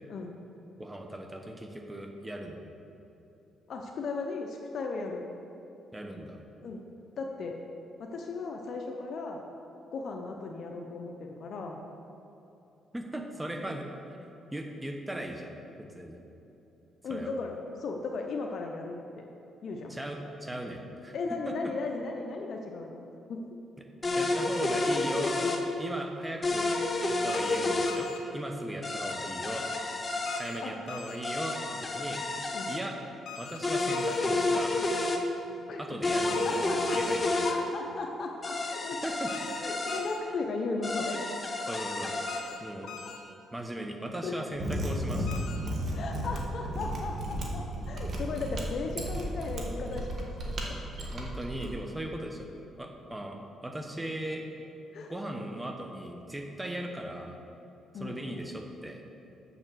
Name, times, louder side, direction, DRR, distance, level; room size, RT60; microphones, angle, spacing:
voice 1, 0.8-2.6 5.9-6.4 12.9-15.5 15.9-16.2 17.1-17.3 19.9-21.1 21.4-21.5 24.1-25.4 25.8-26.7 27.1-29.7 30.4-32.2 32.7-33.0 33.4-34.7 35.8-37.4 39.0-39.3 41.7-42.2 42.6-42.9 43.5-45.4 51.0-52.5 52.8-54.5 55.1-57.4 57.9-59.0, right 1 dB, 10° right, 3 dB, 1.1 m, -38 dB
voice 2, 3.7-5.3 6.6-6.8 7.2-7.6 8.0-9.4 9.9-11.8 17.0-19.2 19.6-20.0 21.1-23.4 30.6-30.8 32.5-32.7 35.7-35.8 36.4-36.8 37.4-39.0 39.6-41.3 41.9-42.0 44.2-44.4 45.9-50.7 54.9-55.1 57.9-58.4, left 3 dB, 60° left, 2 dB, 0.7 m, -36 dB
sound 1, 24.0-25.6 26.4-28.0 28.8-30.4 31.2-32.8 33.6-35.2 36.0-37.6 38.4-40.0 40.8-42.4, left 2 dB, 30° left, 0.9 m, -30 dB
sound 2, 27.3-27.6 27.9-28.2 30.3-30.6 30.9-31.2 33.3-33.6 33.9-34.2 36.3-36.6 36.9-37.2 39.3-39.6 39.9-40.2 42.3-42.6 42.9-43.2 45.3-45.6, left 8 dB, 80° left, 1.7 m, -43 dB
Mechanisms, 44.5-51.7, equal, 50° right, 1.5 m, -34 dB
7.2 x 6.9 x 6.3 m, 3.0 s
cardioid pair, 90°, 0 cm